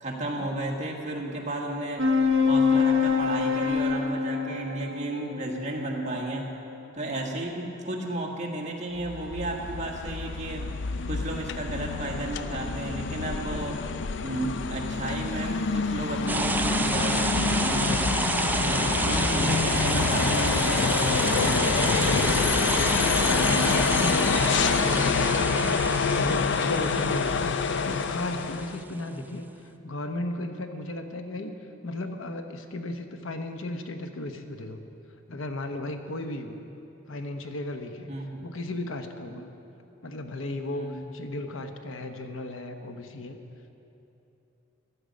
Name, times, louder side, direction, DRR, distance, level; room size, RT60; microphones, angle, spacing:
voice 1, 0.0-2.1 2.5-6.5 6.9-10.7 11.1-13.9 14.2-18.0 18.5-21.9 29.1-29.2 38.1-38.4 39.3-39.5 40.7-40.9, right 1 dB, 35° right, 0 dB, 1.6 m, -33 dB
sound 1, 2.0-6.8, left 5 dB, 85° right, 1.0 m, -25 dB
sound 2, 9.0-28.8, left 5 dB, 60° left, 0.4 m, -27 dB
sound 3, 16.3-28.8, right 2 dB, 10° right, 0.3 m, -29 dB
voice 2, 19.4-20.7 21.8-23.2 23.6-25.8 26.1-31.6 31.8-34.8 35.3-36.6 37.1-38.1 38.4-39.5 40.0-43.4, left 1 dB, 85° left, 6 dB, 1.0 m, -35 dB
15.0 x 11.0 x 5.2 m, 3.0 s
head